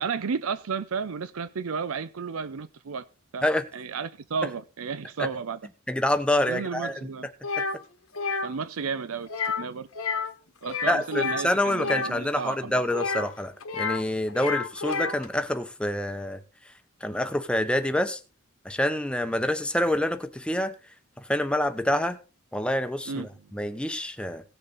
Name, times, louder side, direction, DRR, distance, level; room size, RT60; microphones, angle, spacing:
voice 1, 0.0-3.1 3.3-3.5 3.7-5.6 6.5-7.3 8.4-9.3 9.6-9.9 10.6-12.8 23.1-23.3, right 5 dB, 85° right, 0.6 m, -32 dB
voice 2, 5.9-7.0 10.9-16.4 17.0-18.2 18.6-20.7 21.3-22.2 22.5-24.4, left 1 dB, 5° left, 0.8 m, -27 dB
sound 1, 7.4-7.8 8.1-8.5 9.3-9.7 9.9-10.3 10.6-12.1 12.9-14.0 14.3-15.3, left 4 dB, 85° left, 1.5 m, -30 dB
17.0 x 6.8 x 4.0 m
head